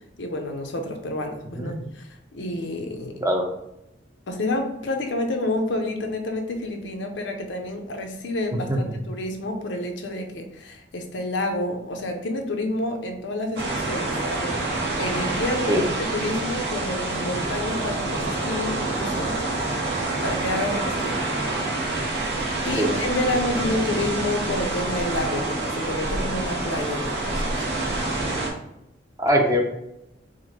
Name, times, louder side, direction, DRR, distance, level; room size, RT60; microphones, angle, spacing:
voice 1, 0.2-3.2 4.3-14.5 15.0-19.8 20.2-21.2 21.8-22.0 22.6-27.7, left 1 dB, 80° left, 4 dB, 0.6 m, -29 dB
sound 1, 13.6-28.5, right 2 dB, 60° right, 0.9 m, -27 dB
voice 2, 29.2-29.6, equal, 15° right, 1 dB, 0.5 m, -21 dB
4.8 x 2.1 x 2.8 m, 0.85 s
head